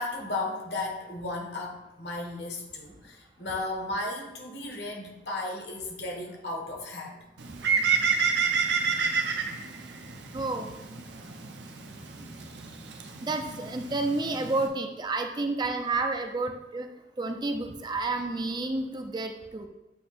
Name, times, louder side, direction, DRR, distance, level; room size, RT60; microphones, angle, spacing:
voice 1, 0.0-7.2, left 2 dB, 65° left, 0 dB, 1.4 m, -35 dB
Bird, 7.4-14.7, right 5 dB, 70° right, 0.7 m, -30 dB
voice 2, 10.3-10.7 12.3-12.4 13.2-16.9 17.2-19.7, right 3 dB, 25° right, 5 dB, 0.4 m, -30 dB
8.1 x 2.8 x 4.2 m, 1.0 s
head